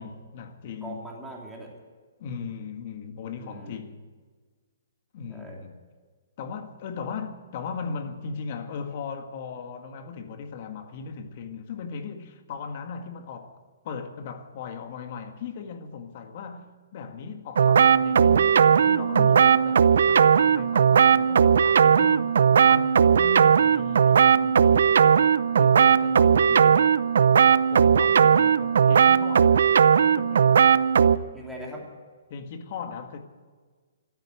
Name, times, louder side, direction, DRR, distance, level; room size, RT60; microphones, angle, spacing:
voice 1, 0.0-1.1 2.2-4.0 5.1-5.8 6.4-13.6 13.8-22.4 22.6-27.0 27.5-29.7 30.0-30.6 32.3-33.2, left 5 dB, 40° left, 1.7 m, -38 dB
voice 2, 0.8-1.7 3.3-3.8 5.3-5.6 31.3-31.9, right 1 dB, ahead, 2.9 m, -40 dB
sound 1, 17.6-31.2, right 7 dB, 65° right, 0.6 m, -18 dB
14.0 x 12.0 x 8.2 m
hypercardioid pair, 165°, 0 cm